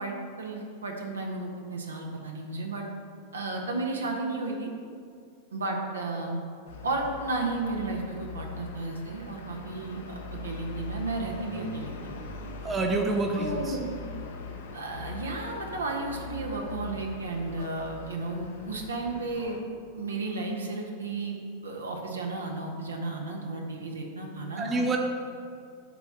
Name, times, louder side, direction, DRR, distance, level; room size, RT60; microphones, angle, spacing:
voice 1, 0.0-2.8 3.3-4.7 5.5-6.4 6.8-12.1 13.4-14.0 14.7-19.6 19.9-21.4 21.6-24.8, right 2 dB, 70° right, 1 dB, 1.1 m, -33 dB
sound 1, 6.7-19.6, left 4 dB, 60° left, 0.8 m, -41 dB
voice 2, 12.6-13.8 17.6-17.7 24.6-25.0, right 2 dB, 20° right, 2 dB, 0.8 m, -27 dB
6.7 x 4.6 x 6.8 m, 2.2 s
figure-of-eight pair, 90°, 0 cm